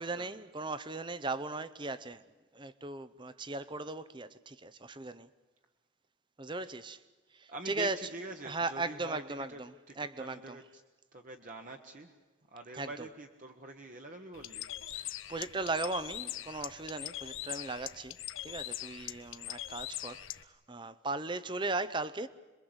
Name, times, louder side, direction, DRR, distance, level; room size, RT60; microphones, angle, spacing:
voice 1, 0.0-2.2 2.5-5.3 6.4-7.0 7.3-8.1 8.4-10.6 12.7-13.0 14.9-18.2 18.4-22.3, right 3 dB, 25° right, 0.7 m, -38 dB
voice 2, 7.5-10.8 11.1-12.1 12.5-14.7, right 1 dB, 40° right, 1.2 m, -45 dB
Bird, 14.3-20.4, left 13 dB, 75° left, 0.9 m, -42 dB
26.5 x 22.5 x 8.0 m
head